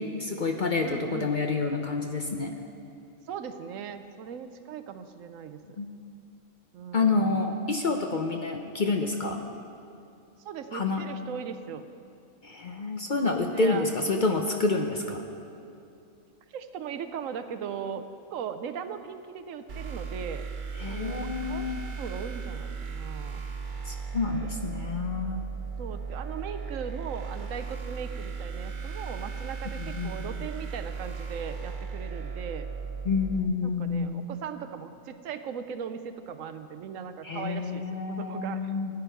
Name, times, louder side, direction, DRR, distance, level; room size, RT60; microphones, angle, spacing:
voice 1, 0.0-2.5 5.8-5.9 6.9-9.4 10.7-11.0 12.4-15.2 20.8-21.8 23.8-25.4 29.8-30.4 33.0-34.2 37.2-38.9, left 3 dB, 50° left, 3 dB, 0.7 m, -28 dB
voice 2, 0.8-1.4 3.3-5.8 6.7-7.4 10.4-11.9 13.5-13.9 16.5-20.4 20.9-23.5 25.8-32.7 33.6-38.7, right 7 dB, 75° right, 10 dB, 1.0 m, -38 dB
sound 1, 19.7-33.4, right 5 dB, 45° right, 0.8 m, -36 dB
15.5 x 10.0 x 4.5 m, 2.5 s
omnidirectional pair, 1.4 m